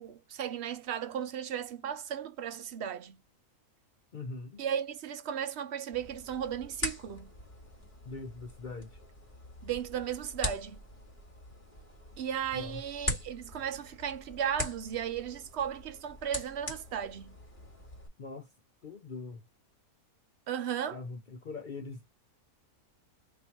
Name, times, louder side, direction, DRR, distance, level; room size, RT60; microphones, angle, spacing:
voice 1, 0.0-3.2 4.6-7.3 9.6-10.8 12.2-17.3 20.5-21.0, right 9 dB, 60° right, 0.7 m, -35 dB
voice 2, 4.1-4.6 8.0-9.0 12.5-12.8 18.2-18.5 18.8-19.4 20.9-22.1, left 3 dB, 60° left, 0.5 m, -42 dB
sound 1, 5.9-18.1, left 1 dB, 20° left, 2.0 m, -42 dB
3.4 x 2.8 x 4.4 m
omnidirectional pair, 1.5 m